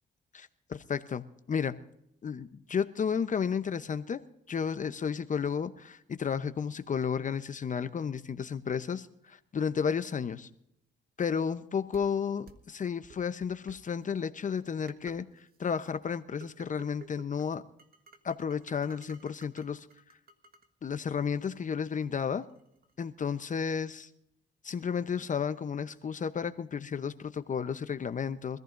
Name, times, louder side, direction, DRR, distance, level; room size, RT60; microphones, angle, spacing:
voice 1, 0.3-1.8 2.2-10.5 11.2-17.6 18.2-19.9 20.8-22.5 23.0-24.1 24.6-28.6, left 6 dB, 40° left, 11 dB, 0.8 m, -32 dB
sound 1, 11.9-12.0 12.5-12.6 13.1-13.7 14.4-14.5 14.9-15.2 15.5-15.9 16.4-17.5 17.8-20.7 20.9-23.5, right 6 dB, 50° right, 1.6 m, -54 dB
24.5 x 14.5 x 2.6 m, 0.76 s
cardioid pair, 90°, 20 cm